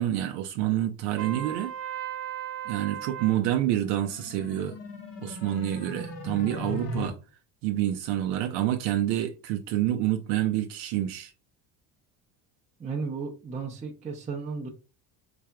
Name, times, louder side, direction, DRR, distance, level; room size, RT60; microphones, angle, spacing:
voice 1, 0.0-1.7 2.7-4.8 5.2-7.2 7.6-11.3, right 12 dB, 85° right, 0.6 m, -28 dB
Trumpet, 1.2-3.4, right 10 dB, 50° right, 0.8 m, -36 dB
sound 1, 3.7-7.1, left 2 dB, 65° left, 1.7 m, -38 dB
voice 2, 12.8-14.7, right 5 dB, 15° right, 0.6 m, -34 dB
4.1 x 3.4 x 2.3 m
cardioid pair, 125°, 41 cm